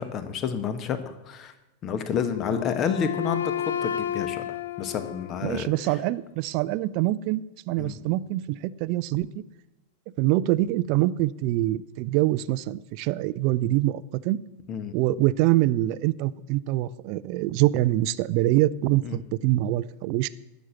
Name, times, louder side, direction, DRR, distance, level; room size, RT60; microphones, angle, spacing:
voice 1, 0.0-1.5 1.8-3.5 3.8-4.4 4.8-5.7 7.8-8.0 14.7-14.9 19.0-19.2, left 7 dB, 30° left, 10 dB, 1.3 m, -29 dB
Wind instrument woodwind instrument, 2.1-6.0, left 10 dB, 65° left, 0.6 m, -32 dB
voice 2, 5.4-7.4 7.7-9.4 10.2-14.4 14.9-20.3, right 16 dB, 45° right, 18 dB, 0.5 m, -25 dB
12.0 x 7.3 x 8.1 m, 1.0 s
figure-of-eight pair, 90°, 0 cm